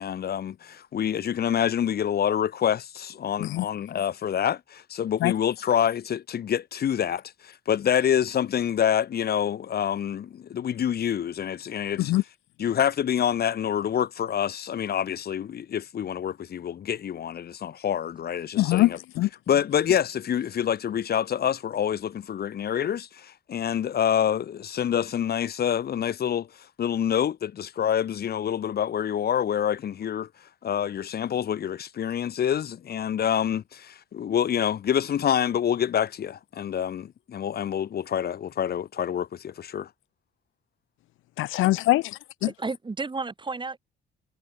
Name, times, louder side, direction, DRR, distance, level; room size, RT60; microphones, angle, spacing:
voice 1, 0.0-12.1 12.6-19.0 19.5-26.5 26.8-30.3 30.6-39.9, left 9 dB, 50° left, 1.0 m, -27 dB
voice 2, 18.6-19.3 41.4-42.5, left 17 dB, 85° left, 0.6 m, -23 dB
voice 3, 42.4-43.8, right 3 dB, 25° right, 2.4 m, -32 dB
cardioid pair, 90°, 20 cm